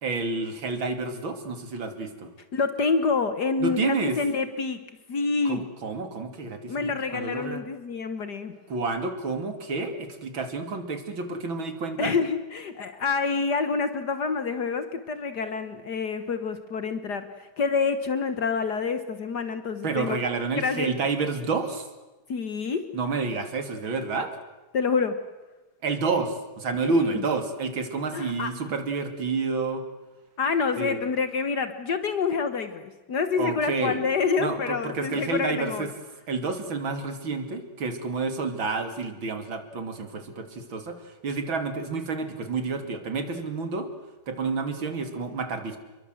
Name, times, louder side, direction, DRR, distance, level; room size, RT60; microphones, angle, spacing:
voice 1, 0.0-2.3 3.6-4.2 5.4-7.6 8.7-12.1 19.8-21.9 22.9-24.4 25.8-29.8 30.8-31.0 33.4-34.0 34.4-35.9 36.3-43.9 44.3-45.8, right 4 dB, 90° right, 7 dB, 3.5 m, -29 dB
voice 2, 2.5-4.8 5.1-5.6 6.7-8.5 12.0-20.2 20.6-20.9 22.3-22.9 24.7-25.2 26.8-27.2 28.1-28.5 30.4-35.9, left 5 dB, 60° left, 10 dB, 1.9 m, -27 dB
29.0 x 22.5 x 7.9 m, 1.1 s
omnidirectional pair, 2.1 m